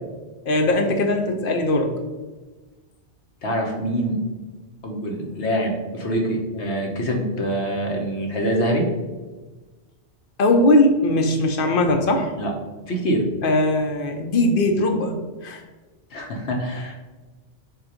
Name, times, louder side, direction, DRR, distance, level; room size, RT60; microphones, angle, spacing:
voice 1, 0.5-1.9 10.4-12.3 13.4-15.1 15.4-15.6, left 1 dB, 55° left, 4 dB, 0.9 m, -19 dB
voice 2, 3.4-4.2 4.8-8.9 12.4-12.5 12.9-13.2 16.1-16.9, right 1 dB, 85° left, 1 dB, 1.3 m, -25 dB
7.3 x 2.6 x 5.0 m, 1.3 s
omnidirectional pair, 1.1 m